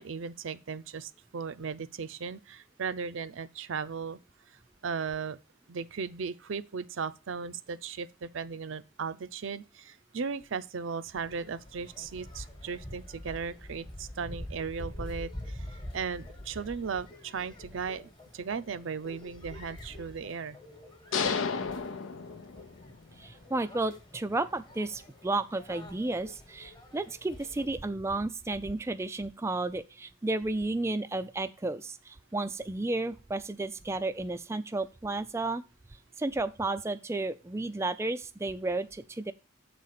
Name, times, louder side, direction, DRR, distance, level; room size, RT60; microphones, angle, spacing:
voice 1, 0.0-4.2 4.8-5.4 5.7-20.6, right 5 dB, 70° right, 0.5 m, -37 dB
sound 1, 11.1-27.7, left 1 dB, 25° left, 1.2 m, -46 dB
sound 2, 21.1-22.9, left 5 dB, 80° left, 0.7 m, -32 dB
voice 2, 23.2-35.6 36.2-39.3, right 2 dB, 15° right, 0.3 m, -32 dB
7.6 x 4.1 x 6.5 m
head